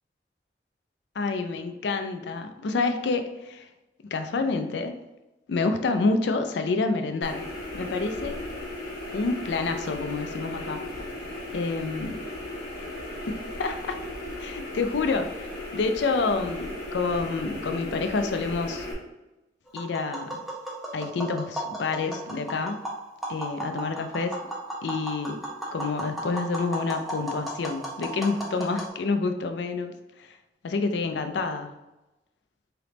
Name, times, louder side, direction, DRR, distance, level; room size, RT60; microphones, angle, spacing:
voice 1, 1.2-3.7 4.1-5.0 5.5-7.5 7.7-8.3 9.1-10.9 11.5-12.3 13.6-14.0 14.4-18.9 19.7-20.4 20.9-22.8 23.3-24.4 24.8-25.4 25.7-29.9 30.2-30.3 30.6-31.7, left 3 dB, 75° left, 7 dB, 0.4 m, -28 dB
sound 1, 7.2-18.9, left 1 dB, 55° left, 1.0 m, -36 dB
Tap, 19.7-28.9, right 1 dB, ahead, 0.7 m, -35 dB
3.8 x 3.4 x 3.0 m, 1.0 s
head